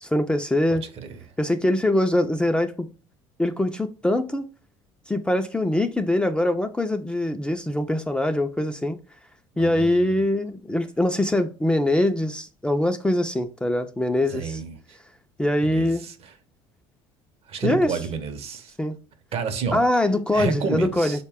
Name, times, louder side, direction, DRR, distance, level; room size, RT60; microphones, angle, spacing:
voice 1, 0.0-0.8 1.4-2.9 3.4-4.5 5.1-9.0 9.6-14.6 15.4-16.1 17.6-18.0 18.8-19.0 19.7-21.2, left 1 dB, 10° left, 0.4 m, -23 dB
voice 2, 0.7-1.1 9.6-10.1 14.3-14.7 15.6-16.3 17.5-18.7 19.3-19.8 20.3-21.2, right 5 dB, 50° right, 0.7 m, -30 dB
3.9 x 2.2 x 3.4 m
supercardioid pair, 90°, 13 cm